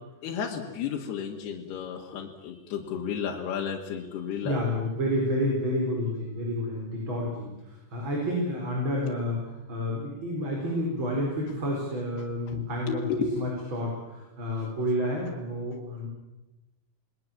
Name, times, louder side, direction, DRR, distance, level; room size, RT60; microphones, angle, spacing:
voice 1, 0.2-4.6 12.5-13.6, left 6 dB, 75° left, 0 dB, 3.8 m, -33 dB
voice 2, 4.4-13.1 13.3-16.1, left 1 dB, 30° right, -1 dB, 5.0 m, -30 dB
29.5 x 20.0 x 7.4 m, 1.0 s
omnidirectional pair, 4.7 m